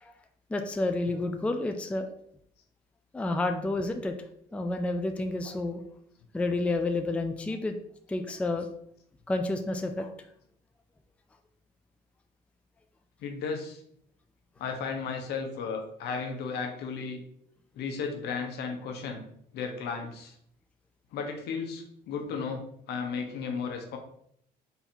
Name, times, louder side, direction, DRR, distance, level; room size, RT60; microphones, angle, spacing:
voice 1, 0.5-2.1 3.1-4.2 4.5-5.8 6.3-7.8 8.1-8.7 9.3-10.1, left 2 dB, 5° left, 6 dB, 0.4 m, -30 dB
voice 2, 13.2-13.8 14.6-17.2 17.7-19.2 19.5-20.3 21.1-24.0, left 5 dB, 75° left, 3 dB, 0.9 m, -34 dB
3.9 x 2.8 x 4.4 m, 0.71 s
cardioid pair, 110°, 17 cm